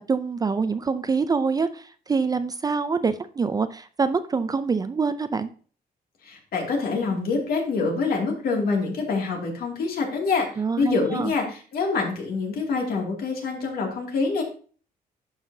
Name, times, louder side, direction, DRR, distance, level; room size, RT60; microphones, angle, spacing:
voice 1, 0.1-5.5 10.6-11.3, right 5 dB, 25° right, 12 dB, 0.4 m, -25 dB
voice 2, 6.2-14.4, left 4 dB, 65° left, 1 dB, 2.4 m, -26 dB
11.5 x 5.6 x 2.7 m, 0.40 s
cardioid pair, 140°, 16 cm